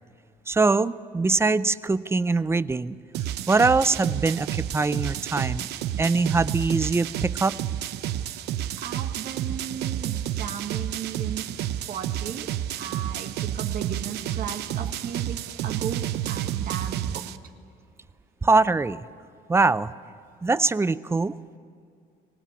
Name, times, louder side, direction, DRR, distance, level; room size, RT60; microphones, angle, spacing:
voice 1, 0.5-3.0 3.5-5.7 6.0-7.6 18.4-19.0 19.5-19.9 20.4-21.3, right 3 dB, 15° right, 16 dB, 0.6 m, -22 dB
sound 1, 3.1-17.4, right 11 dB, 80° right, 0.8 m, -30 dB
voice 2, 8.8-11.5 11.9-12.5 12.8-17.3, right 8 dB, 55° right, 5 dB, 1.8 m, -35 dB
25.0 x 18.0 x 8.4 m, 2.3 s
cardioid pair, 110°, 17 cm